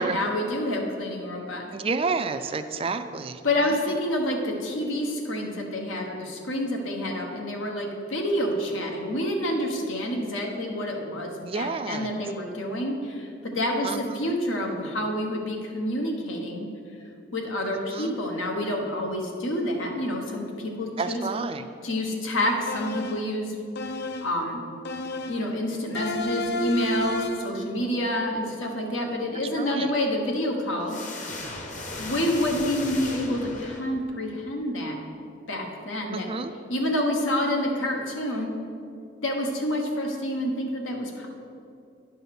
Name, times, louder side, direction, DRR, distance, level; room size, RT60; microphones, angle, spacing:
voice 1, 0.0-1.7 3.4-16.7 17.3-21.3 21.8-23.5 24.2-24.6 25.3-31.1 32.0-35.0 35.5-36.3 36.7-38.5 39.2-41.3, left 1 dB, 85° left, 1 dB, 1.3 m, -28 dB
voice 2, 1.7-3.4 11.4-12.1 13.8-14.3 17.9-18.2 21.0-21.6 29.6-29.9 36.1-36.5, right 4 dB, 30° right, 10 dB, 0.3 m, -30 dB
sound 1, 22.7-23.3 23.7-24.4 24.8-25.5 25.9-27.6, left 1 dB, 55° left, 0.5 m, -31 dB
sound 2, 30.9-34.2, left 2 dB, 40° left, 1.0 m, -36 dB
10.0 x 5.5 x 6.0 m, 2.6 s
head